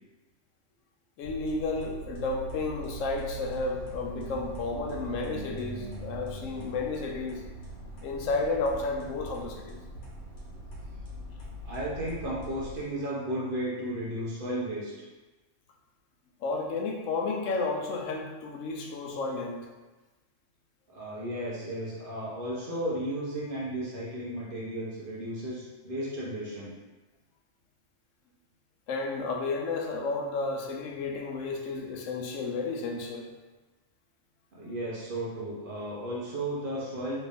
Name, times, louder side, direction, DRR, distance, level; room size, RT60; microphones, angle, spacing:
voice 1, 1.2-7.4 8.0-9.8 16.4-19.7 28.9-33.3, left 3 dB, 90° left, 1 dB, 1.0 m, -32 dB
sound 1, 1.2-12.8, right 1 dB, 70° left, 1.3 m, -41 dB
voice 2, 11.6-14.9 20.9-26.7 34.5-37.2, right 1 dB, 50° right, -6 dB, 0.9 m, -34 dB
3.2 x 2.5 x 3.4 m, 1.2 s
omnidirectional pair, 1.3 m